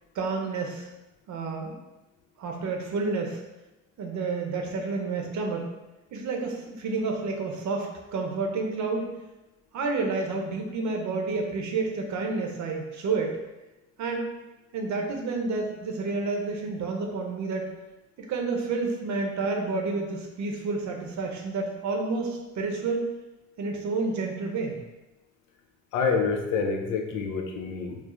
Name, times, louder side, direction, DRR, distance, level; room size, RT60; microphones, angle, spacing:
voice 1, 0.1-0.9 1.3-1.8 2.4-3.4 4.0-5.7 6.1-9.1 9.7-13.4 14.0-14.3 14.7-17.7 18.2-23.2 23.6-24.8, right 3 dB, 70° right, 2 dB, 0.7 m, -30 dB
voice 2, 25.9-28.0, left 5 dB, 80° left, 2 dB, 0.6 m, -27 dB
4.7 x 2.0 x 3.0 m, 1.0 s
cardioid pair, 90°, 30 cm